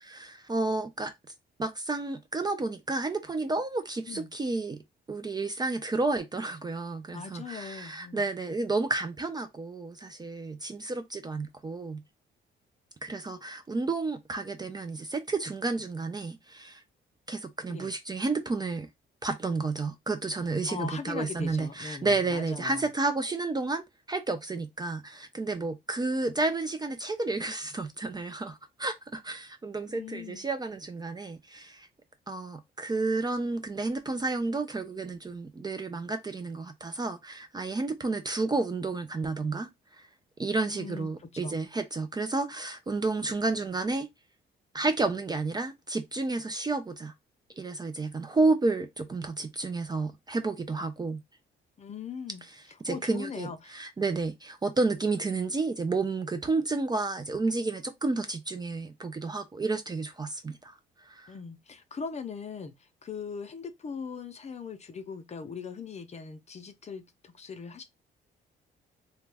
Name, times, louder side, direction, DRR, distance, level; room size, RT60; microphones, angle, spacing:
voice 1, 0.0-1.1 1.6-4.8 5.1-12.0 13.0-16.8 17.3-18.9 19.2-31.9 32.3-40.0 40.4-44.1 44.7-47.1 47.6-51.2 52.8-60.8 61.0-61.3, right 3 dB, 20° right, 0.4 m, -31 dB
voice 2, 7.1-8.2 17.7-17.9 20.7-22.9 29.9-30.5 40.7-41.6 51.8-52.4 52.9-53.8 61.3-67.8, left 5 dB, 35° left, 0.5 m, -40 dB
2.3 x 2.1 x 3.3 m
cardioid pair, 90°, 20 cm